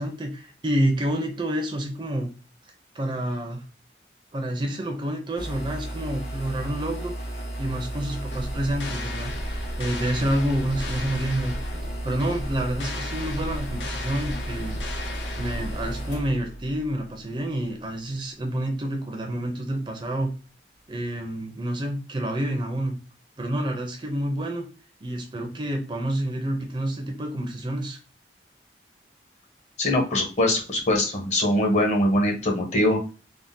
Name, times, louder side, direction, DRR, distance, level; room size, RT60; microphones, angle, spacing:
voice 1, 0.0-2.3 2.9-3.6 4.3-7.3 7.6-11.5 12.0-14.8 15.4-20.3 20.9-23.0 23.4-24.7 25.0-28.0, right 1 dB, 25° right, 3 dB, 0.5 m, -28 dB
sound 1, 5.4-17.8, right 1 dB, 65° left, 1.6 m, -34 dB
sound 2, 8.3-16.2, left 2 dB, 85° left, 0.7 m, -35 dB
voice 2, 29.8-33.0, left 1 dB, 40° left, 0 dB, 0.8 m, -22 dB
3.5 x 2.1 x 2.6 m, 0.34 s
head